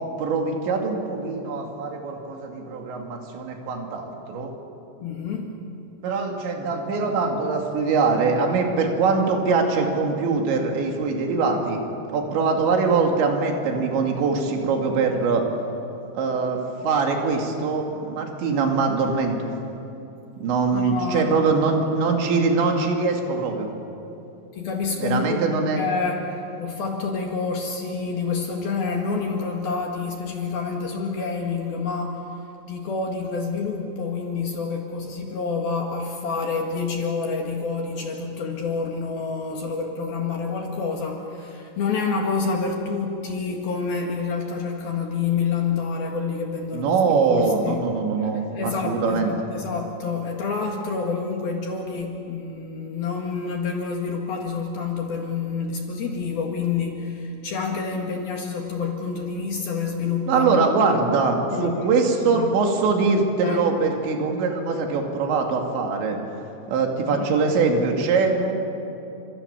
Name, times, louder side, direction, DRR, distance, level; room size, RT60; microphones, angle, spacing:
voice 1, 0.2-4.5 6.0-11.8 12.1-15.5 16.1-19.5 20.4-23.7 25.0-25.8 46.7-49.3 60.3-66.2 66.7-68.5, right 4 dB, 75° right, 2 dB, 4.7 m, -23 dB
voice 2, 5.0-5.5 20.7-21.4 24.5-25.4 25.8-47.8 48.2-48.3 48.5-60.6 61.0-61.2 61.5-62.5 63.4-63.6 67.1-67.3, left 5 dB, 60° left, 1 dB, 3.4 m, -28 dB
30.0 x 27.0 x 7.2 m, 2.8 s
omnidirectional pair, 5.4 m